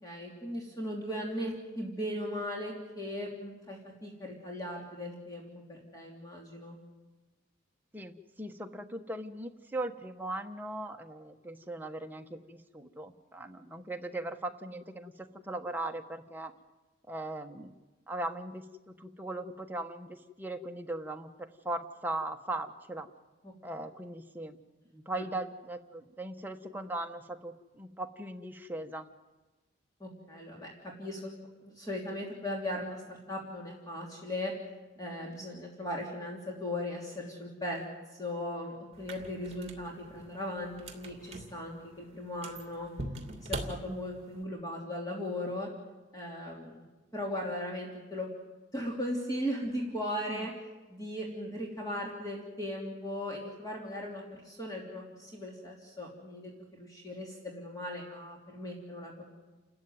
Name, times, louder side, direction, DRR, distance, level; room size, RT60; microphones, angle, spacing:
voice 1, 0.0-6.8 23.4-23.5 25.1-25.2 30.0-31.3 31.6-34.5 35.0-37.8 38.1-42.9 43.5-45.7 46.1-46.8 47.1-48.3 48.7-50.5 50.9-59.3, left 1 dB, 20° left, -1 dB, 3.2 m, -38 dB
voice 2, 7.9-16.5 17.1-17.7 18.1-21.3 21.6-23.1 23.6-24.6 24.9-29.1 35.0-35.3 50.3-50.5, right 1 dB, 10° right, 4 dB, 1.2 m, -39 dB
sound 1, 38.9-44.4, right 2 dB, 35° right, 2.7 m, -43 dB
29.5 x 14.0 x 9.4 m, 1.2 s
head